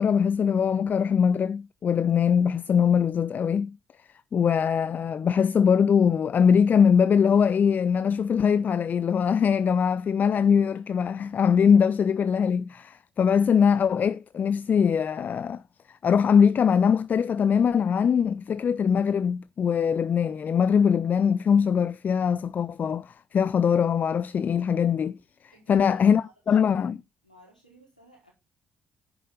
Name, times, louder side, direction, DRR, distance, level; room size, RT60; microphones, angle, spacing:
voice 1, 0.0-3.8 4.3-15.6 16.0-25.2 25.7-27.0, left 7 dB, 45° left, 0.6 m, -22 dB
voice 2, 25.5-26.9 27.2-28.3, right 1 dB, 90° left, 4.5 m, -57 dB
10.0 x 9.8 x 3.8 m
figure-of-eight pair, 40°, 4 cm